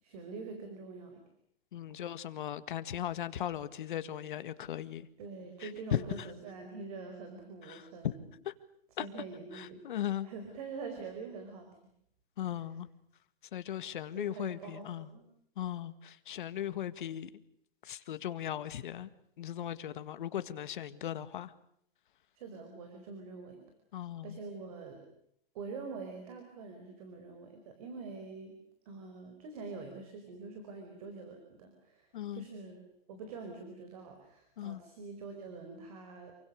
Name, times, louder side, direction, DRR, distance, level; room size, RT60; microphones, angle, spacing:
voice 1, 0.0-1.2 5.2-8.3 9.0-11.7 12.4-12.7 13.9-15.3 22.3-23.6 24.2-25.1 25.5-28.5 28.8-36.3, right 4 dB, 40° right, 6 dB, 4.9 m, -45 dB
voice 2, 1.7-5.1 5.6-5.7 7.7-7.8 8.5-8.6 9.0-9.1 9.5-10.3 12.4-12.9 13.5-15.1 15.6-17.3 17.8-19.1 19.4-21.5 23.9-24.4 32.1-32.4 34.6-34.8, left 11 dB, 60° left, 13 dB, 1.9 m, -38 dB
28.0 x 24.5 x 6.5 m, 0.72 s
hypercardioid pair, 175°, 29 cm